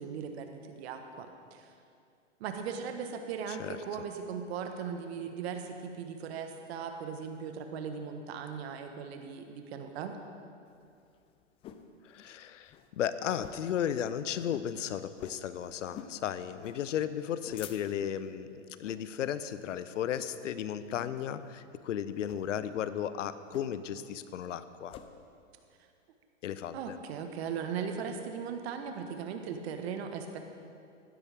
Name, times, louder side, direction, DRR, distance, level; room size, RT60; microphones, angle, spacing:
voice 1, 0.0-1.7 2.4-10.1 26.7-30.4, right 6 dB, 55° right, 6 dB, 1.5 m, -38 dB
sound 1, 10.7-11.9 12.3-12.4 12.6-12.9 13.3-13.8 14.1-14.2 14.5-14.7 15.2-15.5 15.9-16.2 16.6-16.8 17.2-18.1 18.7-19.0 19.5-19.7 20.1-20.5 20.9-21.2 22.2-22.5 23.5-24.0 24.3-25.1, left 9 dB, 15° left, 0.4 m, -48 dB
voice 2, 12.0-25.0 26.4-27.0, left 9 dB, 75° left, 13 dB, 0.7 m, -35 dB
15.5 x 12.5 x 3.6 m, 2.4 s
hypercardioid pair, 115°, 38 cm